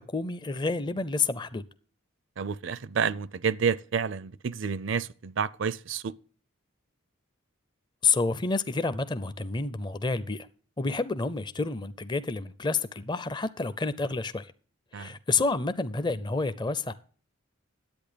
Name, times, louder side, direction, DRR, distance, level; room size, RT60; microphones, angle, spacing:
voice 1, 0.0-1.6 8.0-10.5 10.8-14.5 14.9-16.9, left 4 dB, 20° left, 0.5 m, -29 dB
voice 2, 2.4-6.1 14.9-15.1, right 6 dB, 65° right, 0.5 m, -29 dB
10.5 x 8.6 x 5.1 m
head